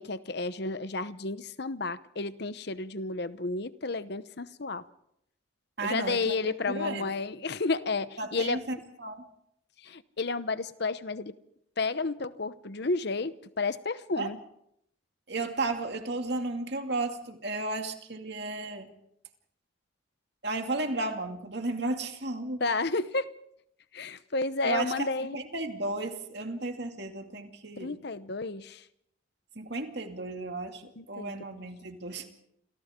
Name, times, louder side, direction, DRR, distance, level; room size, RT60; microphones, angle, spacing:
voice 1, 0.0-4.8 5.8-8.6 9.8-11.3 11.8-14.4 22.6-23.3 23.9-25.4 27.8-28.8 31.0-31.3, left 3 dB, 55° left, 14 dB, 0.9 m, -32 dB
voice 2, 5.8-6.3 6.7-7.1 8.2-9.2 14.2-14.3 15.3-18.9 20.4-22.6 24.6-25.1 25.3-28.0 29.6-30.8 31.1-32.3, right 2 dB, 55° right, 4 dB, 2.5 m, -33 dB
28.5 x 26.5 x 3.8 m, 0.75 s
head